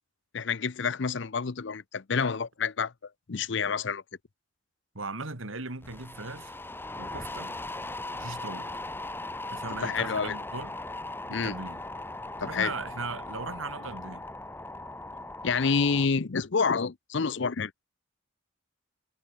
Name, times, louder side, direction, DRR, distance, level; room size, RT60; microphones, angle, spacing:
voice 1, 0.3-2.9 3.3-4.0 9.7-10.4 11.3-11.5 12.4-12.7 15.4-17.7, left 5 dB, 60° left, 0.6 m, -28 dB
voice 2, 4.9-6.6 7.0-7.6 8.2-8.7 9.5-10.7 11.3-11.8 12.4-14.2, right 3 dB, 80° right, 2.6 m, -38 dB
sound 1, 5.8-16.1, left 2 dB, 10° left, 5.4 m, -39 dB
head